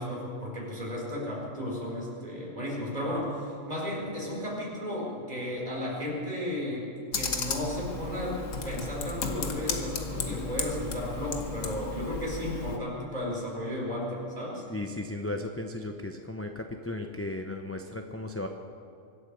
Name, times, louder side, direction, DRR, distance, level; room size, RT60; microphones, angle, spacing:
voice 1, 0.0-6.9 7.1-14.6, left 1 dB, 30° right, -4 dB, 4.8 m, -34 dB
Computer keyboard, 7.1-12.8, left 4 dB, 75° left, 1.6 m, -34 dB
voice 2, 14.7-18.5, left 2 dB, 15° left, 3 dB, 0.5 m, -35 dB
24.5 x 8.7 x 6.8 m, 2.6 s
omnidirectional pair, 1.3 m